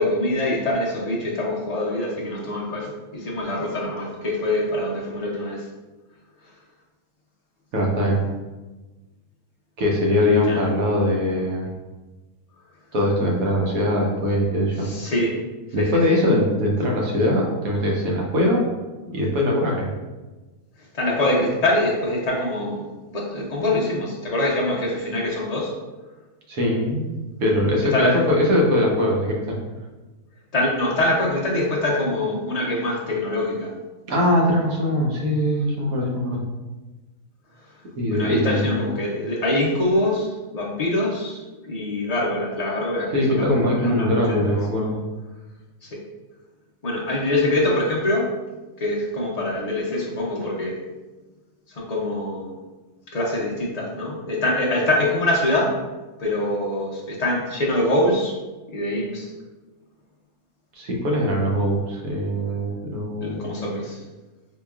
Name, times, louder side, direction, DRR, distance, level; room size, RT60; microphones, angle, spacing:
voice 1, 0.0-5.6 10.2-10.7 14.8-15.4 15.8-15.9 20.9-25.7 27.9-28.2 30.5-33.7 38.1-41.4 41.7-44.4 45.8-46.0 46.8-48.3 48.8-50.8 51.7-52.6 53.1-55.7 56.2-58.3 58.7-59.3 63.2-64.0, left 1 dB, 65° left, -4 dB, 0.3 m, -24 dB
voice 2, 7.7-8.2 9.8-11.7 12.9-14.9 15.7-18.7 19.1-19.9 26.5-27.1 27.4-29.6 34.1-36.4 38.0-38.8 43.1-45.0 60.7-63.6, left 1 dB, 70° right, -1 dB, 1.2 m, -21 dB
4.6 x 2.9 x 2.3 m, 1.2 s
omnidirectional pair, 1.6 m